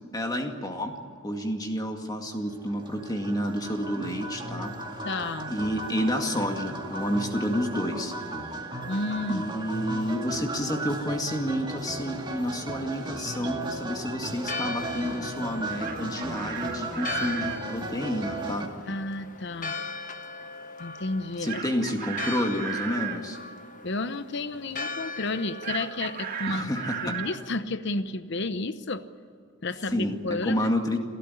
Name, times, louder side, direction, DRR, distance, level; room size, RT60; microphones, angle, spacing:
voice 1, 0.1-1.0 1.2-4.7 5.5-8.1 9.3-18.7 21.4-23.4 26.5-27.2 29.9-31.0, equal, 20° left, 3 dB, 2.1 m, -29 dB
sound 1, 2.5-18.7, right 2 dB, 20° right, 2.1 m, -36 dB
voice 2, 5.0-5.5 8.9-9.4 18.9-19.8 20.8-21.6 23.8-26.7 27.0-29.0 29.6-30.7, left 2 dB, 55° left, 11 dB, 0.9 m, -31 dB
Church bell, 14.4-27.0, left 3 dB, 40° left, 1.3 m, -39 dB
Chicken rooster, 15.6-17.6 21.5-23.2 25.6-27.4, right 7 dB, 45° right, 1.9 m, -35 dB
29.0 x 13.5 x 9.9 m, 2.2 s
head